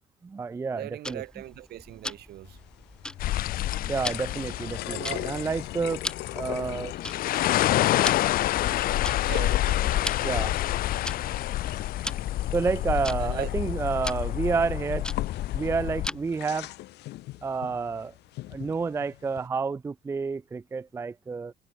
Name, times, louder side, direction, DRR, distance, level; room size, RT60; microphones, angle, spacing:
voice 1, 0.2-1.2 3.8-6.0 6.3-6.9 10.2-10.6 12.5-15.1 15.5-16.7 17.4-18.1 18.5-21.5, right 4 dB, 15° right, 0.3 m, -29 dB
voice 2, 0.7-2.6 4.9-5.4 9.2-10.1 13.2-13.5, right 14 dB, 70° right, 2.3 m, -39 dB
Tick-tock, 1.0-16.5, left 1 dB, 5° left, 0.8 m, -41 dB
sound 1, 2.4-19.5, left 17 dB, 80° left, 2.6 m, -42 dB
sound 2, 3.2-16.1, left 14 dB, 60° left, 0.5 m, -28 dB
cardioid pair, 110°, 17 cm